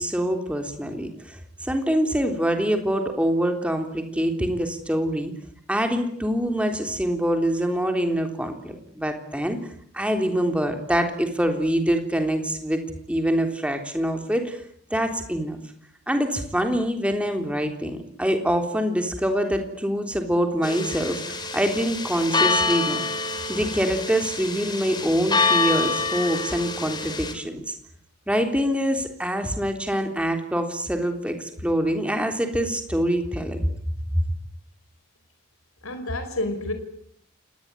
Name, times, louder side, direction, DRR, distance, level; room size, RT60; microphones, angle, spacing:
voice 1, 0.0-5.3 5.7-9.6 9.9-12.8 13.1-14.6 14.9-15.6 16.1-23.0 23.5-27.8 28.3-33.6 34.1-34.2, equal, 5° right, 5 dB, 3.5 m, -25 dB
sound 1, 20.6-27.3, left 3 dB, 20° left, 3.6 m, -26 dB
voice 2, 35.8-36.7, left 2 dB, 75° left, 8 dB, 4.8 m, -29 dB
29.0 x 20.0 x 9.8 m, 0.69 s
head